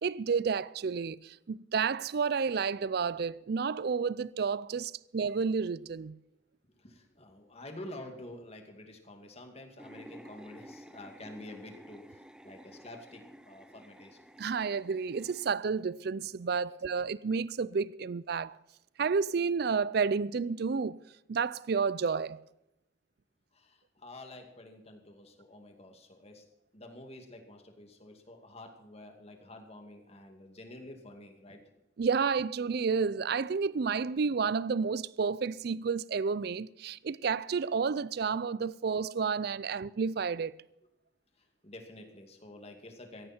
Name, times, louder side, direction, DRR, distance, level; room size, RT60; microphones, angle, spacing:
voice 1, 0.0-6.2 14.4-18.6 19.0-21.0 21.3-22.4 32.0-40.5, right 5 dB, 55° right, 0.4 m, -31 dB
voice 2, 6.8-14.2 23.5-26.4 26.7-31.6 41.6-43.3, left 1 dB, 35° left, 2.4 m, -49 dB
sound 1, 9.8-15.6, equal, 5° right, 0.6 m, -52 dB
16.5 x 14.5 x 4.4 m
head